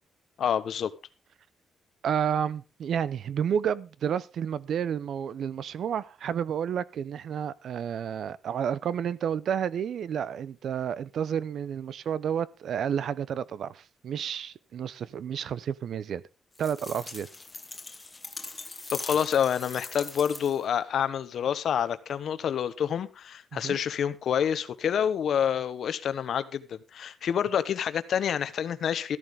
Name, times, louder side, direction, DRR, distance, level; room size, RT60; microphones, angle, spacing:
voice 1, 0.4-0.9 18.9-29.2, left 8 dB, 60° left, 1.1 m, -28 dB
voice 2, 2.0-16.2 16.6-17.3 23.5-23.8, right 8 dB, 60° right, 0.8 m, -30 dB
sound 1, 16.5-20.7, left 3 dB, 15° left, 1.4 m, -41 dB
14.0 x 13.5 x 3.7 m
cardioid pair, 150°, 0 cm